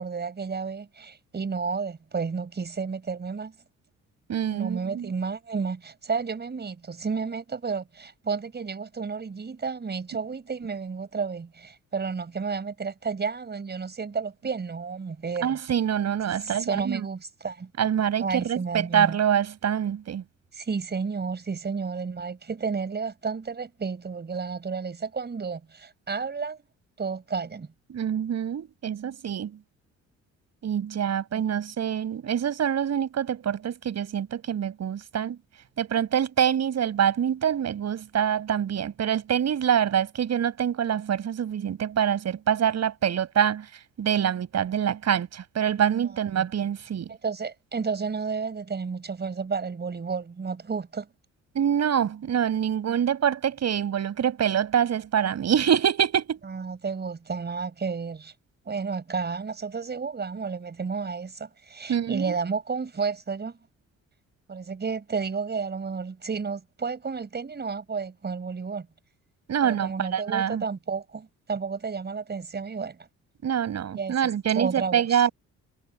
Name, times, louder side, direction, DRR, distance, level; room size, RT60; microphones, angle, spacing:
voice 1, 0.0-3.5 4.5-15.6 16.4-17.7 18.2-19.2 20.5-26.6 27.0-27.7 31.3-31.4 46.3-46.5 47.1-51.1 56.5-58.3 58.6-63.6 64.5-68.9 69.6-73.0 73.9-75.2, right 5 dB, 35° right, 5.2 m, -31 dB
voice 2, 4.3-5.1 15.4-17.1 17.8-20.2 27.9-29.6 30.6-35.4 35.8-47.1 51.5-56.4 61.9-62.3 69.5-70.6 73.4-75.3, right 9 dB, 60° right, 6.2 m, -25 dB
cardioid pair, 90°, 30 cm